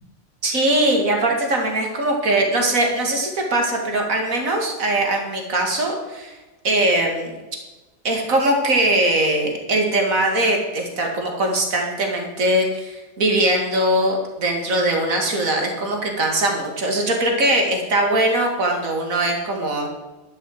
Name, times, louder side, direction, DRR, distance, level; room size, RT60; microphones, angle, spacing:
voice 1, 0.4-6.3 6.6-7.3 8.0-19.9, right 1 dB, 85° right, 1 dB, 2.4 m, -21 dB
11.5 x 6.5 x 7.7 m, 1.1 s
omnidirectional pair, 1.4 m